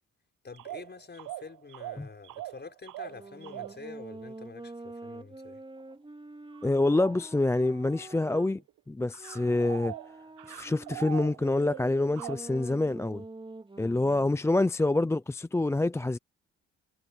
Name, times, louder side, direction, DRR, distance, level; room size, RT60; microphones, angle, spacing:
voice 1, 0.4-5.6 14.1-14.3, left 4 dB, 35° left, 6.4 m, -47 dB
sound 1, 0.5-3.9 5.8-5.9 6.5-7.3 8.3-8.8 9.1-12.4, right 15 dB, 85° right, 0.7 m, -42 dB
sound 2, 3.0-8.5 9.1-14.4, right 2 dB, 15° right, 4.3 m, -46 dB
voice 2, 6.6-8.6 8.9-9.9 10.5-13.2 13.8-16.2, left 2 dB, 10° left, 0.5 m, -26 dB
cardioid pair, 90°, 30 cm